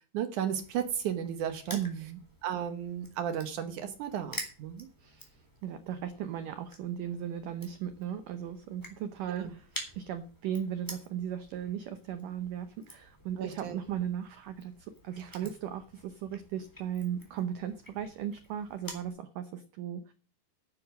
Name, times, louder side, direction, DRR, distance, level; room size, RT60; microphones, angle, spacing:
voice 1, 0.0-1.8 2.4-4.9 9.3-9.5 13.4-13.8 15.2-15.3, right 9 dB, 75° right, 8 dB, 1.8 m, -34 dB
Crushing, 0.5-19.1, equal, 5° left, 2.8 m, -49 dB
voice 2, 1.7-2.2 5.0-20.1, right 9 dB, 90° right, 10 dB, 1.8 m, -37 dB
11.0 x 9.1 x 6.1 m, 0.39 s
omnidirectional pair, 4.9 m